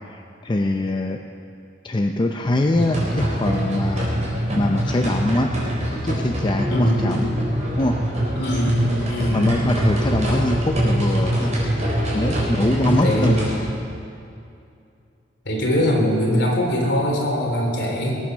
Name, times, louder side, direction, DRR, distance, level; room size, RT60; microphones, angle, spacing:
voice 1, 0.1-1.2 1.8-4.3 4.5-5.5 6.0-7.3 7.8-8.0 9.3-11.5 12.1-13.4, left 1 dB, 25° left, 3 dB, 0.6 m, -23 dB
sound 1, 2.7-13.6, equal, 40° right, 4.5 m, -23 dB
voice 2, 6.7-7.0 8.4-8.8 9.1-9.4 13.0-13.4 15.5-18.2, equal, 65° left, -2 dB, 3.7 m, -21 dB
20.0 x 8.9 x 6.2 m, 2.5 s
head